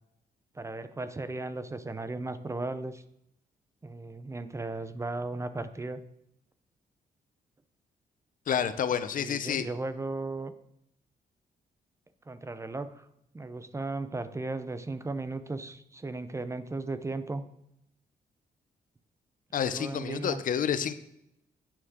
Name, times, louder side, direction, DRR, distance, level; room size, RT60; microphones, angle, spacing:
voice 1, 0.5-3.0 3.8-6.0 9.1-10.5 12.3-13.1 13.3-17.4 19.6-20.4, right 2 dB, 20° right, 12 dB, 0.7 m, -36 dB
voice 2, 8.5-9.7 19.5-20.9, left 8 dB, 65° left, 12 dB, 0.8 m, -29 dB
11.5 x 9.0 x 3.7 m, 0.78 s
cardioid pair, 115°, 15 cm